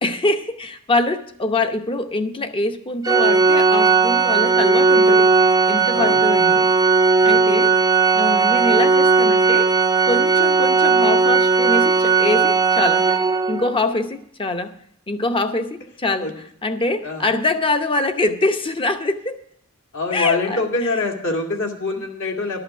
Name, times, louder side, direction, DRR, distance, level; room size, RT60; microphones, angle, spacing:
voice 1, 0.0-5.3 5.7-6.7 7.2-7.7 8.1-9.8 10.0-13.1 13.5-14.8 15.1-16.3 16.6-19.4 20.1-20.9, left 2 dB, 25° left, 0.7 m, -24 dB
Organ, 3.0-13.8, right 4 dB, 15° right, 0.3 m, -16 dB
voice 2, 17.0-17.3 19.9-22.6, left 3 dB, 60° left, 2.0 m, -25 dB
11.5 x 5.8 x 8.7 m
head